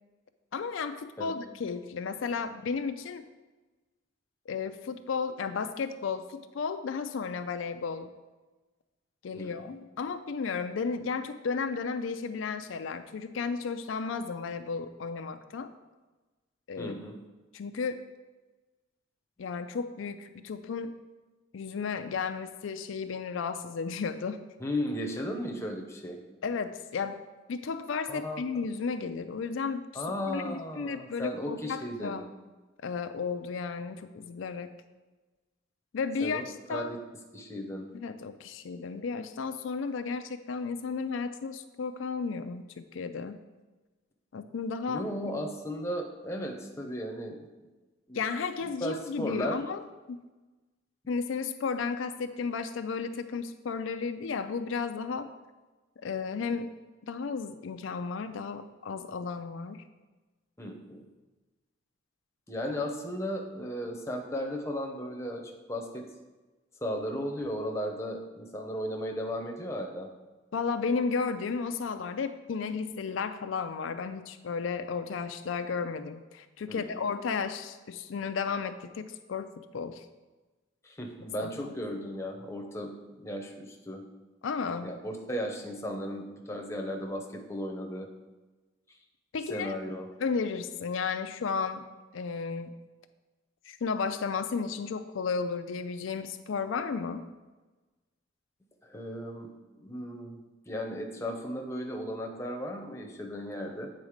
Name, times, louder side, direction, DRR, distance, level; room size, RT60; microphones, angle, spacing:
voice 1, 0.5-3.2 4.5-8.1 9.2-15.7 16.7-16.9 17.5-18.0 19.4-20.9 21.5-24.4 26.4-27.2 27.5-32.2 32.8-34.7 35.9-36.9 37.9-43.4 44.3-45.0 48.1-49.8 50.1-50.2 51.1-55.3 56.0-56.8 57.0-59.8 70.5-80.1 81.4-81.7 84.4-84.9 89.3-89.7 90.2-91.9 92.1-92.7 93.7-97.2, left 5 dB, 85° left, 9 dB, 0.4 m, -33 dB
voice 2, 9.3-9.7 16.8-17.2 24.6-26.2 28.1-28.4 29.9-32.2 36.2-36.4 36.7-37.0 37.3-37.9 44.9-47.4 48.1-48.2 48.6-49.6 60.6-61.1 62.5-66.0 66.8-70.1 76.7-77.0 80.8-84.0 84.8-88.1 89.5-90.1 98.8-99.5 99.7-100.4 100.7-103.9, equal, 15° left, 2 dB, 0.8 m, -35 dB
8.7 x 4.0 x 5.0 m, 1.2 s
head